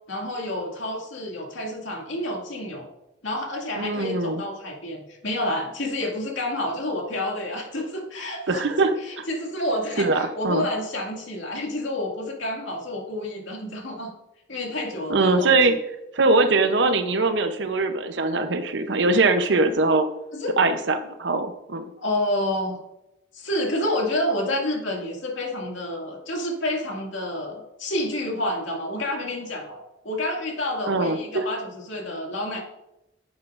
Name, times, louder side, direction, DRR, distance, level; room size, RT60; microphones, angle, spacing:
voice 1, 0.1-2.9 3.2-8.6 9.0-14.1 14.5-15.6 20.3-20.6 22.0-22.8 23.3-32.6, left 1 dB, 75° left, 0 dB, 2.2 m, -29 dB
voice 2, 3.8-4.4 8.5-9.3 10.0-10.7 15.1-15.7 16.1-20.1 20.6-21.8 30.9-31.4, right 3 dB, 65° right, 9 dB, 0.7 m, -22 dB
10.5 x 8.3 x 2.5 m, 0.90 s
head